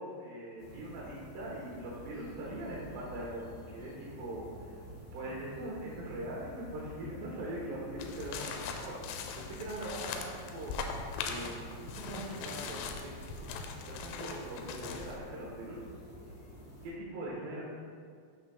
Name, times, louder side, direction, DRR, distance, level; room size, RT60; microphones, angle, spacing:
voice 1, 0.0-4.5 5.1-13.1 13.4-13.5 13.9-15.8 16.8-17.6, right 1 dB, 70° right, -6 dB, 2.3 m, -41 dB
sound 1, 0.6-16.9, equal, 50° left, 2.6 m, -50 dB
sound 2, 8.0-15.2, left 5 dB, 90° left, 3.1 m, -41 dB
14.0 x 5.8 x 2.3 m, 2.1 s
omnidirectional pair, 5.6 m